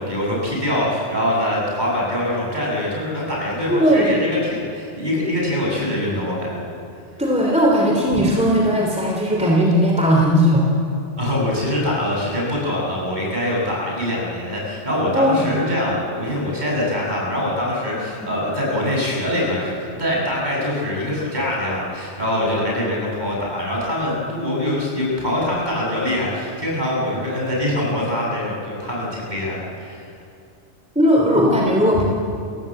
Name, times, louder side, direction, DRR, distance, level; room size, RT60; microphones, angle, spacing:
voice 1, 0.0-6.7 8.1-8.2 11.2-30.0 31.9-32.0, left 1 dB, 40° right, -3 dB, 7.6 m, -23 dB
voice 2, 3.7-4.2 7.2-10.7 15.1-15.5 18.2-18.3 30.9-32.0, equal, 5° right, -2 dB, 3.0 m, -17 dB
30.0 x 17.0 x 7.7 m, 2.7 s
omnidirectional pair, 1.2 m